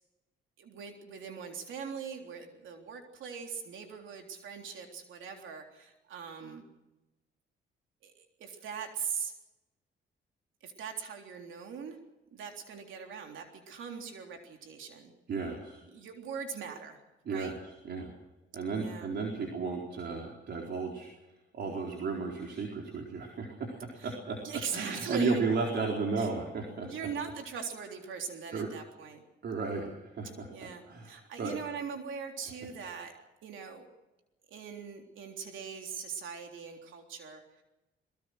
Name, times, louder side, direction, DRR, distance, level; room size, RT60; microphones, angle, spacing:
voice 1, 0.6-6.7 8.0-9.3 10.6-12.0 12.3-15.1 15.8-17.0 17.3-17.5 18.7-19.1 24.0-24.1 24.4-25.4 26.2-26.3 26.8-29.2 30.5-33.1 33.4-33.9 34.5-37.6, right 6 dB, 80° right, 3 dB, 3.6 m, -41 dB
voice 2, 15.3-15.8 17.3-18.1 18.5-21.1 21.5-24.4 24.7-26.9 28.5-28.7 29.4-31.6, right 4 dB, 60° right, 0 dB, 4.3 m, -34 dB
22.5 x 22.0 x 6.4 m, 1.0 s
cardioid pair, 90°, 20 cm